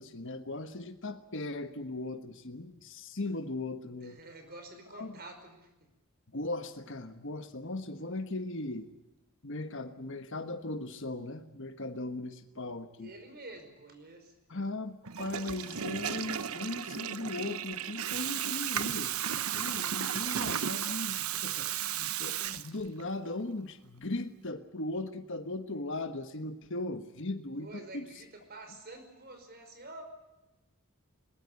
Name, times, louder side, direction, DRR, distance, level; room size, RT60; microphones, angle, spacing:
voice 1, 0.0-4.2 4.9-5.2 6.3-8.9 9.4-13.1 14.5-19.1 19.5-28.1, left 2 dB, 60° left, 8 dB, 1.4 m, -38 dB
voice 2, 4.0-5.7 13.0-14.4 27.6-30.0, right 2 dB, 45° right, 7 dB, 5.2 m, -48 dB
Water tap faucet / Toilet flush, 15.0-23.1, right 9 dB, 80° right, 1.0 m, -34 dB
22.0 x 21.0 x 8.4 m, 0.98 s
head